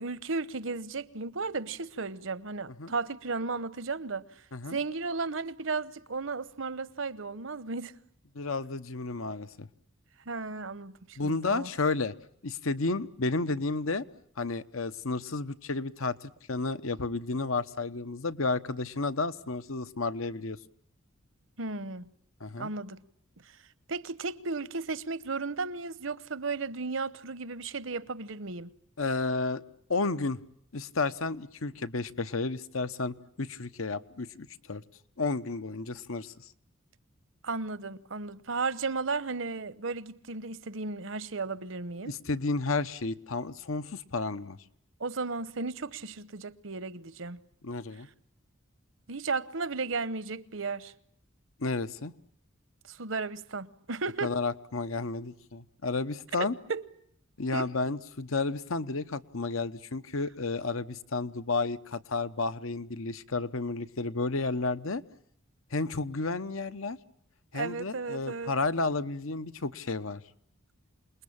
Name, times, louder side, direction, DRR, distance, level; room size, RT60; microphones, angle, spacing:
voice 1, 0.0-4.2 4.7-7.9 10.3-11.7 21.6-22.1 22.6-23.0 23.9-28.7 37.4-42.1 45.0-47.4 49.1-50.9 52.9-54.3 56.4-56.8 57.5-57.7 67.5-68.5, right 4 dB, 70° right, 1.0 m, -34 dB
voice 2, 8.3-9.7 11.2-12.1 12.4-14.0 14.4-20.6 22.4-22.7 29.0-29.6 29.9-30.4 30.7-34.8 35.2-36.5 42.0-44.6 47.6-48.1 51.6-52.1 54.2-56.6 57.4-65.0 65.7-67.0 67.5-70.2, left 3 dB, 80° left, 1.1 m, -32 dB
28.0 x 20.5 x 8.7 m
head